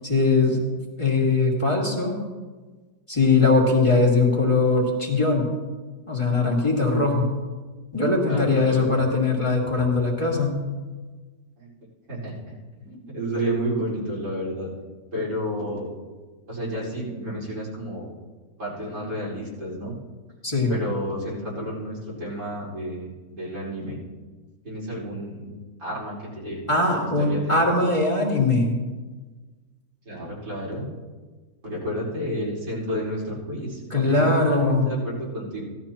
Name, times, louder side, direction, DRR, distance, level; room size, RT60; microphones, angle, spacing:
voice 1, 0.0-0.6 1.0-2.2 3.1-5.5 6.1-7.3 7.9-10.6 20.4-20.8 26.7-28.8 33.9-34.9, left 3 dB, 20° left, -2 dB, 2.1 m, -21 dB
voice 2, 8.3-9.0 11.6-11.7 12.1-12.6 12.8-14.7 15.1-15.9 16.5-18.1 18.6-20.0 20.7-24.0 24.6-26.6 26.9-27.6 30.1-30.9 31.6-35.6, equal, 80° right, -8 dB, 5.3 m, -31 dB
17.0 x 12.5 x 3.0 m, 1.3 s
omnidirectional pair, 1.8 m